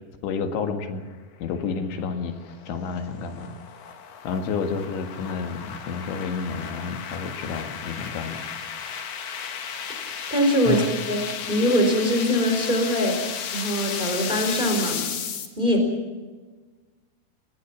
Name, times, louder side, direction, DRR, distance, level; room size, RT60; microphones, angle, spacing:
voice 1, 0.2-1.1 1.4-2.3 2.7-3.6 4.2-8.5 10.7-10.9, left 5 dB, 90° left, 5 dB, 4.1 m, -30 dB
sound 1, 1.5-15.5, left 7 dB, 55° left, 3.0 m, -34 dB
voice 2, 10.3-13.2 13.5-15.0 15.6-15.9, equal, 10° right, 3 dB, 4.3 m, -22 dB
29.0 x 19.0 x 6.1 m, 1.3 s
omnidirectional pair, 5.1 m